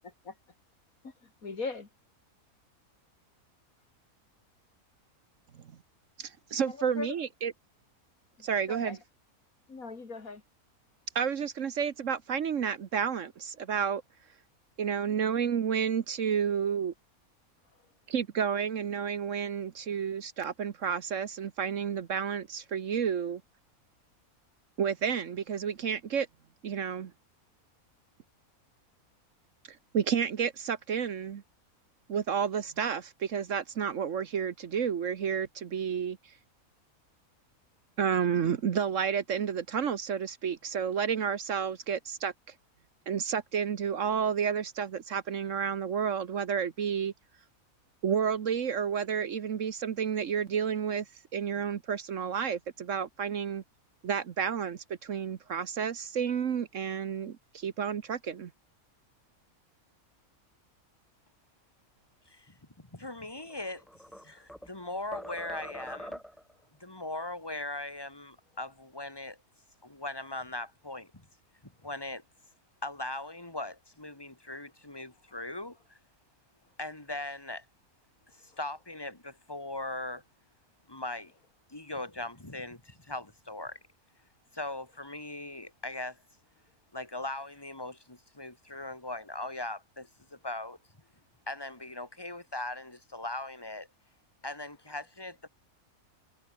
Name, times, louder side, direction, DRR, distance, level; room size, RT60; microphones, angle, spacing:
voice 1, 1.0-1.9 6.7-7.1 8.7-9.0 9.7-10.4 64.3-64.5 78.5-78.6, left 4 dB, 70° left, 3.3 m, -39 dB
voice 2, 6.2-7.5 8.4-9.0 11.1-14.0 14.8-16.9 18.1-23.4 24.8-26.3 26.6-27.1 29.9-31.4 32.1-36.2 38.0-42.3 43.1-47.1 48.0-51.0 51.3-53.6 54.0-58.5, right 7 dB, 60° right, 1.3 m, -31 dB
voice 3, 62.3-66.2 66.8-69.4 69.8-71.3 71.6-72.2 72.8-76.0 76.8-77.7 78.3-80.2 80.9-81.3 81.7-83.8 84.5-86.2 86.9-90.8 91.5-93.9 94.4-95.5, left 2 dB, 15° left, 2.7 m, -39 dB
sound 1, 63.4-64.8 65.1-66.5, equal, ahead, 3.9 m, -43 dB
omnidirectional pair, 1.5 m